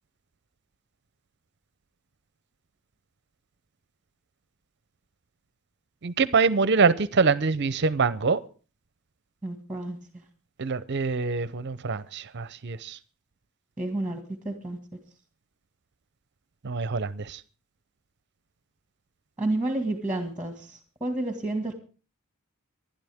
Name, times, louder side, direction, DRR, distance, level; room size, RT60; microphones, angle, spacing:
voice 1, 6.0-8.4 10.6-13.0 16.6-17.4, right 4 dB, 55° right, 0.6 m, -24 dB
voice 2, 9.4-10.0 13.8-14.8 19.4-21.7, right 2 dB, 5° right, 1.9 m, -30 dB
26.0 x 11.5 x 3.5 m
head